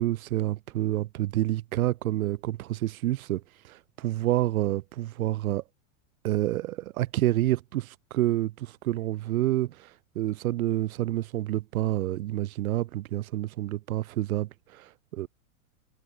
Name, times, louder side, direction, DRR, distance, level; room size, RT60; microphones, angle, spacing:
voice 1, 0.0-5.6 6.2-15.3, right 15 dB, 75° right, 1.4 m, -28 dB
supercardioid pair, 140°, 42 cm